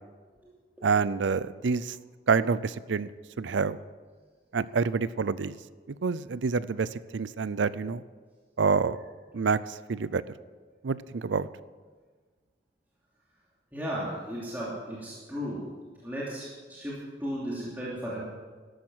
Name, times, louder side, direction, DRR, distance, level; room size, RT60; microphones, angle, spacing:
voice 1, 0.8-1.9 2.3-3.1 3.4-3.8 4.5-5.6 6.0-8.0 8.6-9.0 9.3-10.2 10.8-11.5, right 5 dB, 85° right, 17 dB, 0.5 m, -27 dB
voice 2, 13.7-15.6 16.0-18.2, equal, 10° right, -8 dB, 2.8 m, -35 dB
13.5 x 12.0 x 6.2 m, 1.5 s
head